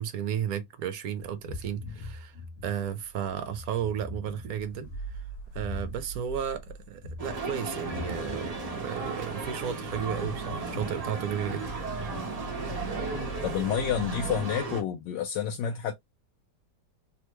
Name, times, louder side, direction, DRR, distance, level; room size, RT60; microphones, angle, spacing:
voice 1, 0.0-2.4 2.6-4.9 5.5-11.6, right 9 dB, 70° right, 1.0 m, -33 dB
sound 1, 1.2-14.4, equal, 60° left, 1.0 m, -41 dB
sound 2, 7.2-14.8, right 3 dB, 40° right, 0.5 m, -35 dB
voice 2, 13.4-15.9, left 9 dB, 80° left, 1.2 m, -29 dB
3.4 x 2.1 x 3.1 m
omnidirectional pair, 1.9 m